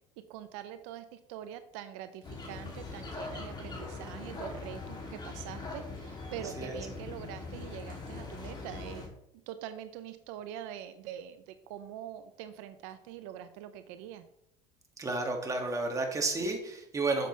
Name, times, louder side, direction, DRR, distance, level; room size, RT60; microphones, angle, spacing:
voice 1, 0.3-9.1 9.5-14.2, right 11 dB, 85° right, 10 dB, 0.6 m, -44 dB
sound 1, 2.2-9.1, left 3 dB, 30° left, 2.7 m, -41 dB
voice 2, 6.4-6.8 15.0-17.3, right 3 dB, 20° right, 2 dB, 2.0 m, -32 dB
9.1 x 6.6 x 3.3 m, 0.79 s
supercardioid pair, 105°, 16 cm